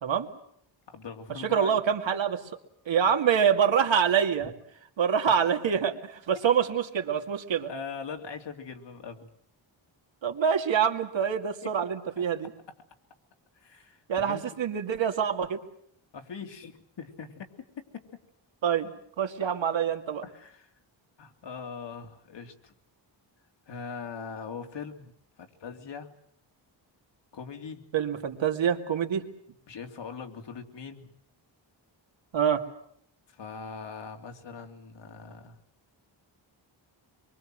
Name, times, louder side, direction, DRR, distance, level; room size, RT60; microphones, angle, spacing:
voice 1, 0.9-1.8 4.4-4.5 7.7-9.3 11.6-11.7 12.2-12.3 13.5-14.4 16.1-17.5 17.9-18.0 20.2-20.7 21.2-22.7 23.7-25.1 25.4-26.1 27.3-27.8 29.7-31.1 33.3-35.6, left 5 dB, 65° left, 4 dB, 3.0 m, -41 dB
voice 2, 1.5-2.4 2.9-4.5 5.0-7.7 10.2-12.5 14.1-15.6 18.6-18.9 19.2-20.2 27.9-29.3 32.3-32.6, right 7 dB, 75° right, 6 dB, 2.6 m, -26 dB
25.5 x 23.5 x 7.7 m, 0.66 s
wide cardioid pair, 155°, 46 cm